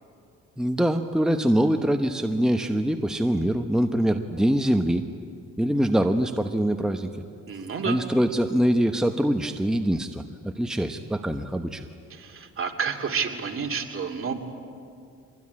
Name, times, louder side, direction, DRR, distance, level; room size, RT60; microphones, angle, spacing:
voice 1, 0.6-5.1 5.6-7.1 7.8-11.8, equal, ahead, 6 dB, 1.0 m, -24 dB
voice 2, 7.5-8.0 12.1-14.3, right 6 dB, 45° right, 3 dB, 2.7 m, -30 dB
24.5 x 20.5 x 9.8 m, 2.4 s
cardioid pair, 90°, 30 cm